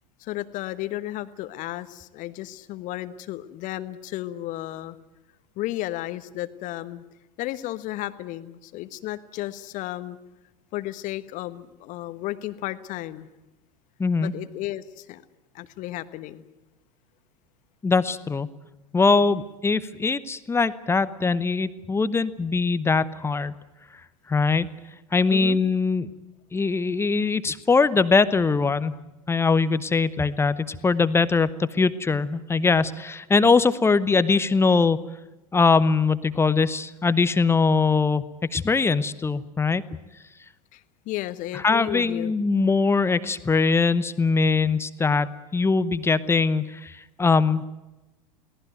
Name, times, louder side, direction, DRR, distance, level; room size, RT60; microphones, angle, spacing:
voice 1, 0.2-5.0 5.6-7.0 7.4-10.2 10.7-13.3 14.2-15.2 15.5-16.4 25.3-25.6 40.7-42.3, left 15 dB, 40° left, 13 dB, 1.3 m, -33 dB
voice 2, 14.0-14.3 17.8-18.5 18.9-23.5 24.3-24.7 25.1-26.1 26.5-28.9 29.3-35.0 35.5-38.2 38.5-39.8 41.6-47.7, left 4 dB, 10° left, 15 dB, 0.9 m, -22 dB
23.5 x 18.0 x 9.3 m, 1.0 s
figure-of-eight pair, 85°, 20 cm